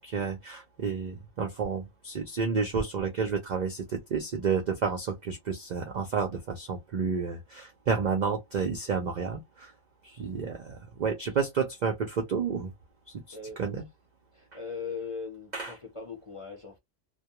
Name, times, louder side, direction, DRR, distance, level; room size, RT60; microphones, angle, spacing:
voice 1, 0.0-9.7 10.0-12.7 13.3-13.9 15.5-15.7, right 5 dB, 65° right, 0.4 m, -30 dB
voice 2, 14.3-16.8, left 5 dB, 35° left, 0.6 m, -39 dB
2.2 x 2.1 x 2.8 m
omnidirectional pair, 1.4 m